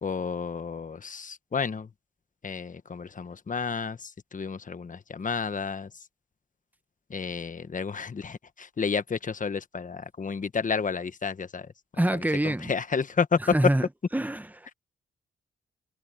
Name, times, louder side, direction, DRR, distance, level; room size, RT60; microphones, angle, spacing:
voice 1, 0.0-1.9 2.4-5.9 7.1-11.7 12.1-13.4, left 5 dB, 45° left, 1.3 m, -31 dB
voice 2, 12.0-12.7 13.5-13.8 14.1-14.7, right 1 dB, 10° right, 1.6 m, -25 dB
supercardioid pair, 50°, 19 cm